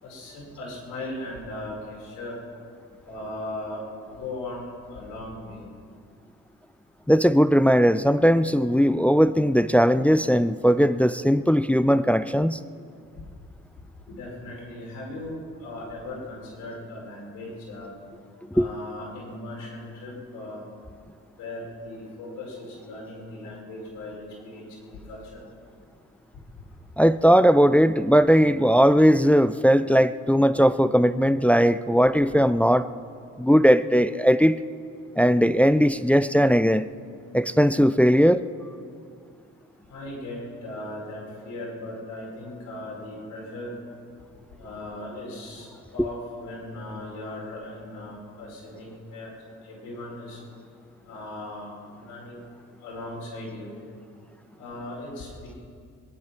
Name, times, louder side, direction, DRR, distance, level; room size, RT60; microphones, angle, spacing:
voice 1, 0.0-2.4 3.0-3.8 4.2-5.6 14.1-17.9 18.5-20.6 21.4-25.4 39.9-43.7 44.6-45.7 45.9-49.3 49.6-50.4 51.0-52.4 52.8-53.7 54.6-55.3, left 1 dB, 90° left, -3 dB, 5.0 m, -38 dB
voice 2, 7.1-12.6 18.6-18.7 27.0-32.9 33.4-34.6 35.2-36.9 37.3-38.5, equal, 5° left, 13 dB, 0.4 m, -19 dB
21.5 x 10.5 x 5.9 m, 2.3 s
cardioid pair, 90°, 30 cm